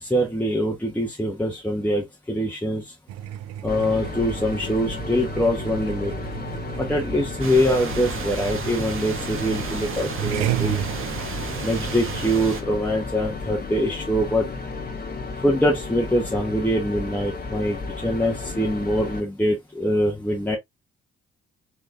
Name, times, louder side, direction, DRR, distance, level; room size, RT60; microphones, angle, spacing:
voice 1, 0.0-2.8 3.6-6.1 6.8-10.8 11.6-14.5 15.4-20.6, equal, 5° left, 1.2 m, -24 dB
sound 1, 3.1-12.3, right 12 dB, 60° right, 0.5 m, -33 dB
sound 2, 3.7-19.2, left 4 dB, 30° left, 1.2 m, -33 dB
sound 3, 7.4-12.6, right 5 dB, 45° right, 1.2 m, -33 dB
4.3 x 3.1 x 2.5 m
figure-of-eight pair, 45°, 30 cm